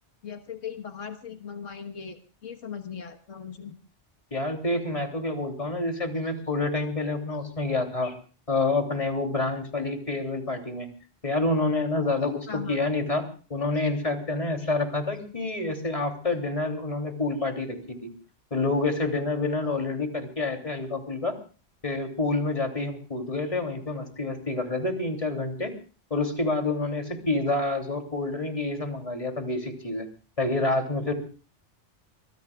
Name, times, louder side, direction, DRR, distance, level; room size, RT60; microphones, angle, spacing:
voice 1, 0.2-3.7 12.5-12.8, left 7 dB, 90° left, 5 dB, 1.7 m, -38 dB
voice 2, 4.3-8.1 8.5-10.9 11.2-18.1 18.5-21.4 21.8-25.7 26.1-30.1 30.4-31.1, left 2 dB, 30° left, 3 dB, 3.0 m, -28 dB
24.5 x 21.5 x 2.4 m, 0.38 s
omnidirectional pair, 1.2 m